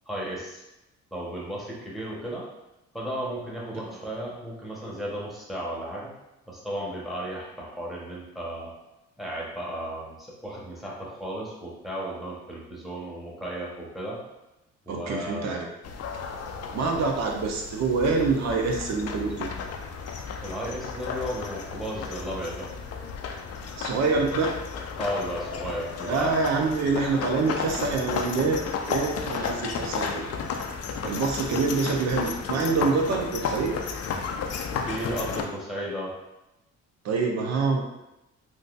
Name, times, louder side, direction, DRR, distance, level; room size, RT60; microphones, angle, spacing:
voice 1, 0.1-0.6 1.1-2.5 2.9-6.1 6.5-8.7 9.2-14.2 14.9-15.7 16.9-17.1 20.4-22.7 25.0-26.3 29.6-29.7 34.9-36.1, equal, ahead, -5 dB, 1.1 m, -34 dB
voice 2, 14.9-15.7 16.7-19.5 23.8-24.5 26.1-30.2 31.0-33.7 37.0-37.8, right 4 dB, 65° right, 2 dB, 0.7 m, -26 dB
sound 1, 15.8-35.4, left 5 dB, 55° left, 0.5 m, -33 dB
3.6 x 2.7 x 2.5 m, 0.93 s
cardioid pair, 90°, 30 cm